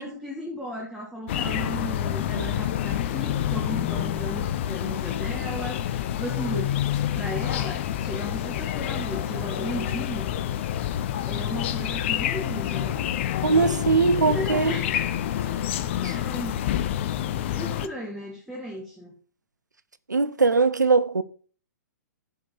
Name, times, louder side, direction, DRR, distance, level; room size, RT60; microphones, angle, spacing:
voice 1, 0.0-6.8 7.1-10.3 11.3-13.0 14.3-15.0 15.3-16.5 17.5-19.1, equal, ahead, 1.9 m, -36 dB
sound 1, 1.3-17.9, left 11 dB, 40° left, 0.7 m, -28 dB
voice 2, 13.4-14.7 16.0-16.1 20.1-21.2, right 4 dB, 80° right, 0.8 m, -21 dB
11.0 x 5.2 x 5.4 m
figure-of-eight pair, 120°, 10 cm